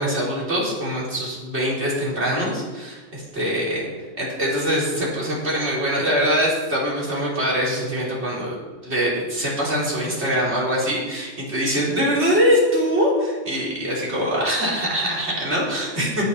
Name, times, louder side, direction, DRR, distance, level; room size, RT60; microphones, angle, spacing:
voice 1, 0.0-3.9 4.2-8.6 8.8-16.2, equal, 60° right, -5 dB, 3.9 m, -23 dB
11.0 x 8.3 x 5.6 m, 1.3 s
omnidirectional pair, 1.3 m